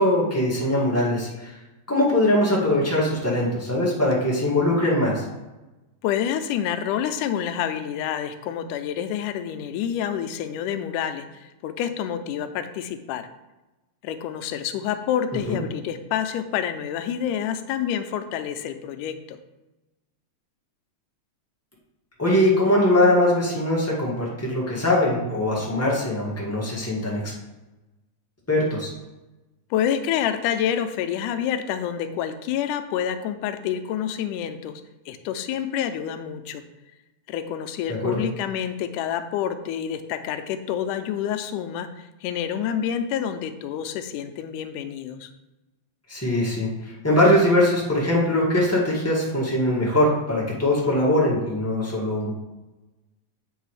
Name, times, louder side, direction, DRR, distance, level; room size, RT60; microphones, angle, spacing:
voice 1, 0.0-1.5 1.9-5.2 15.5-15.6 22.2-27.3 28.5-28.9 38.0-38.1 46.1-52.3, left 1 dB, 15° left, -5 dB, 0.5 m, -21 dB
voice 2, 6.0-13.2 14.0-19.4 29.7-34.8 35.1-36.6 37.3-45.3, left 9 dB, 90° left, 8 dB, 2.1 m, -28 dB
8.2 x 3.8 x 4.8 m, 1.0 s
omnidirectional pair, 3.6 m